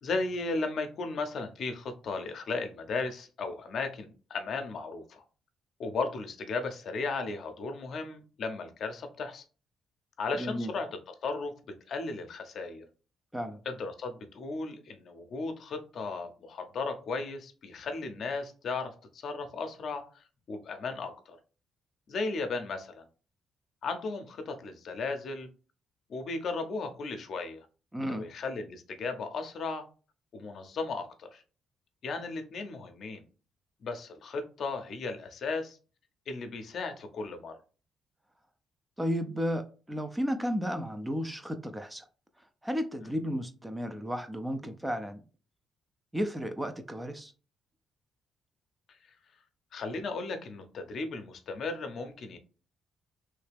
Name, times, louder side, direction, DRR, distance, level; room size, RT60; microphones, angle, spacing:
voice 1, 0.0-5.2 5.8-9.4 10.2-11.5 11.9-12.8 13.7-21.4 22.1-23.0 23.8-25.5 26.1-27.7 28.1-29.8 30.3-31.4 32.0-33.2 33.8-35.8 36.3-37.5 49.7-52.4, left 3 dB, 60° left, 6 dB, 0.6 m, -35 dB
voice 2, 10.4-10.7 13.3-13.6 27.9-28.3 39.0-42.1 42.6-45.2 46.1-47.3, equal, 10° right, 8 dB, 0.5 m, -33 dB
3.2 x 2.8 x 3.4 m, 0.37 s
cardioid pair, 90°, 0 cm